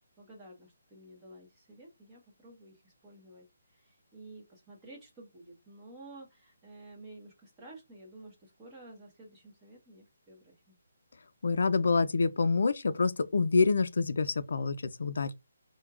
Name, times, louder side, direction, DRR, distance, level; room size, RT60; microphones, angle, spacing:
voice 1, 0.2-10.7, right 2 dB, 10° right, 0.9 m, -52 dB
voice 2, 11.4-15.3, left 4 dB, 60° left, 0.3 m, -27 dB
4.4 x 2.1 x 2.3 m
hypercardioid pair, 175°, 0 cm